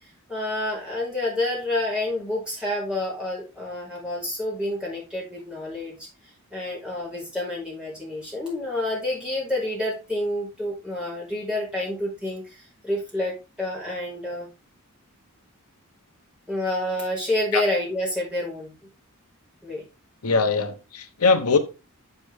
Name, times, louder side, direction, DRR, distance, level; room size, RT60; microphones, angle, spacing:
voice 1, 0.3-6.1 6.5-14.5 16.5-18.7 19.6-19.8, left 1 dB, 5° right, 5.1 m, -28 dB
voice 2, 20.2-21.6, left 4 dB, 90° left, 1.0 m, -21 dB
7.9 x 6.9 x 3.6 m
head